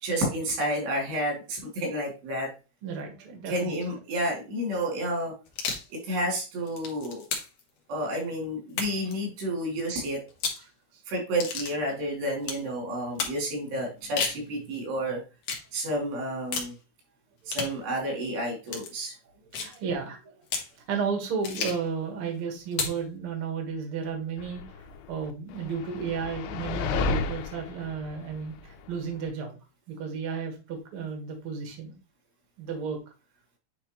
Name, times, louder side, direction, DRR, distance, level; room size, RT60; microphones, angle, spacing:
voice 1, 0.0-2.5 3.5-5.3 5.9-7.2 7.9-10.2 11.1-15.2 15.7-16.7 17.5-19.1, equal, 85° right, 0 dB, 5.0 m, -30 dB
voice 2, 2.8-4.0 10.6-11.0 17.8-17.9 19.5-20.4 20.9-24.6 25.1-29.6 29.9-31.9 32.6-33.0, right 6 dB, 50° right, 3 dB, 1.7 m, -33 dB
sound 1, 5.5-5.9 6.5-7.6 8.7-9.1 10.3-10.6 11.4-11.7 12.4-12.6 13.2-13.4 14.0-14.4 15.4-15.7 16.5-16.7 17.5-17.8 18.7-18.9 19.5-19.8 20.5-20.7 21.4-21.9 22.7-23.0, left 5 dB, 65° left, 1.6 m, -32 dB
sound 2, 24.4-29.3, left 4 dB, 85° left, 2.8 m, -33 dB
9.0 x 4.3 x 3.1 m, 0.31 s
omnidirectional pair, 4.7 m